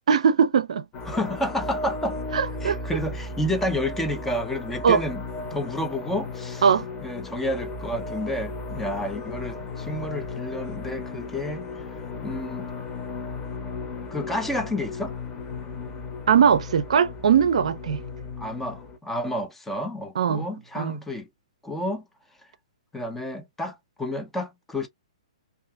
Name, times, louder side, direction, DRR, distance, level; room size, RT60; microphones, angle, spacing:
voice 1, 0.1-0.8 2.3-2.8 4.8-5.0 6.6-6.8 16.3-18.0 20.2-20.5 20.8-21.0, right 7 dB, 70° right, 0.4 m, -20 dB
sound 1, 0.9-19.0, left 3 dB, 25° left, 0.9 m, -35 dB
voice 2, 1.1-2.2 2.6-5.2 5.5-6.6 7.0-11.7 12.2-12.7 14.1-15.1 18.4-21.3 21.6-22.1 22.9-24.9, left 1 dB, 5° left, 0.5 m, -30 dB
2.5 x 2.4 x 2.2 m
hypercardioid pair, 130°, 4 cm